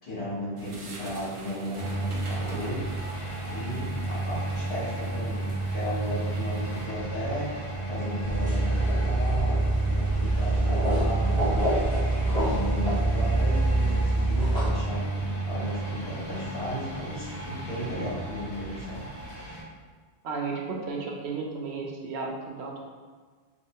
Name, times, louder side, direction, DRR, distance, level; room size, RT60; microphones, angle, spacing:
voice 1, 0.0-11.5 12.3-15.1 15.5-19.0, equal, 65° left, -10 dB, 1.3 m, -35 dB
sound 1, 0.6-6.9, right 2 dB, 50° right, 0.3 m, -46 dB
sound 2, 1.7-19.6, right 2 dB, 30° left, 0.8 m, -32 dB
sound 3, 8.2-14.7, right 2 dB, 15° right, 1.5 m, -25 dB
voice 2, 20.2-22.8, right 4 dB, 80° right, 0 dB, 0.8 m, -33 dB
3.1 x 2.7 x 2.8 m, 1.5 s
omnidirectional pair, 1.1 m